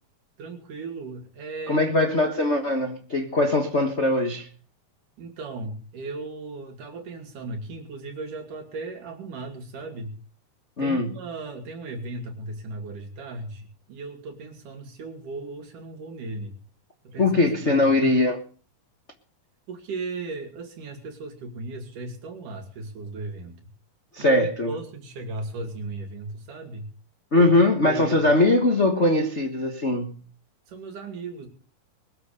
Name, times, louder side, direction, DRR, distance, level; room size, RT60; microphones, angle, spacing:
voice 1, 0.4-1.8 5.2-10.2 10.8-16.6 17.0-18.3 19.7-23.6 24.2-26.9 27.4-27.5 27.7-28.3 30.7-31.5, right 3 dB, 70° right, 4.3 m, -36 dB
voice 2, 1.7-4.5 10.8-11.1 17.2-18.4 24.1-24.7 27.3-30.2, left 2 dB, 50° left, 0.8 m, -21 dB
22.0 x 7.6 x 6.7 m
omnidirectional pair, 3.8 m